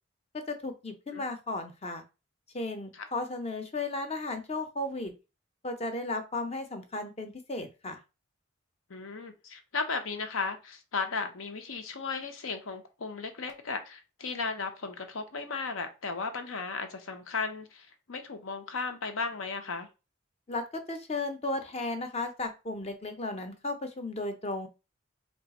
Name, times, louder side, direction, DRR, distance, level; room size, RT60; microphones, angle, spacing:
voice 1, 0.5-2.0 2.5-5.1 5.6-8.0 20.5-24.7, left 2 dB, 30° left, 0.6 m, -35 dB
voice 2, 8.9-19.9, left 4 dB, 80° left, 0.7 m, -35 dB
3.3 x 2.4 x 4.0 m
head